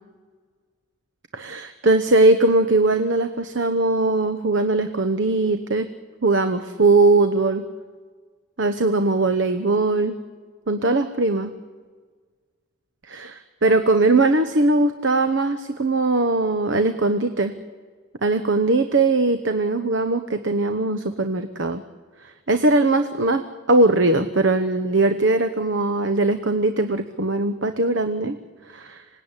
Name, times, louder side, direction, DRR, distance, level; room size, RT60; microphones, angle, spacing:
voice 1, 1.3-5.9 6.2-7.6 8.6-10.1 10.7-11.5 13.1-17.5 18.2-21.8 22.2-28.4 28.7-29.0, right 2 dB, 60° right, 9 dB, 1.0 m, -20 dB
26.0 x 18.5 x 9.9 m, 1.5 s
head